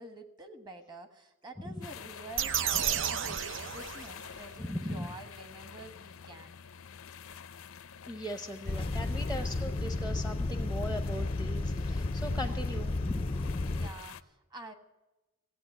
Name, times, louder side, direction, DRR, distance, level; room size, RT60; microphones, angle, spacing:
voice 1, 0.0-6.6 13.7-14.7, right 1 dB, 20° right, 7 dB, 1.4 m, -48 dB
sound 1, 1.8-14.2, left 7 dB, 85° left, 0.6 m, -49 dB
sound 2, 2.4-4.5, right 8 dB, 60° right, 0.6 m, -32 dB
voice 2, 4.6-5.1 8.1-13.3, equal, 5° right, 6 dB, 0.8 m, -39 dB
sound 3, 8.7-13.9, left 2 dB, 25° left, 0.4 m, -32 dB
16.0 x 8.6 x 9.9 m, 1.1 s
head